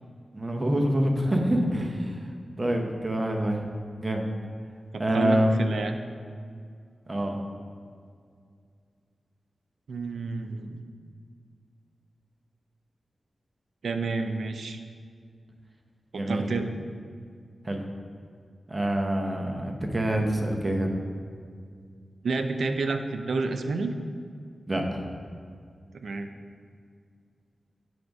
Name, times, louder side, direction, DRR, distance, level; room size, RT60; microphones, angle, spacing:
voice 1, 0.3-2.1 2.6-3.6 4.0-4.2 5.0-5.5 7.1-7.4 16.1-16.5 17.7-17.8 18.7-20.9 24.7-25.1, right 1 dB, 25° right, 2 dB, 0.7 m, -26 dB
voice 2, 4.9-6.0 9.9-10.8 13.8-14.8 16.1-16.7 22.2-23.9 26.0-26.3, right 3 dB, 85° right, 6 dB, 0.5 m, -30 dB
7.7 x 3.5 x 5.1 m, 2.2 s
wide cardioid pair, 120°, 0 cm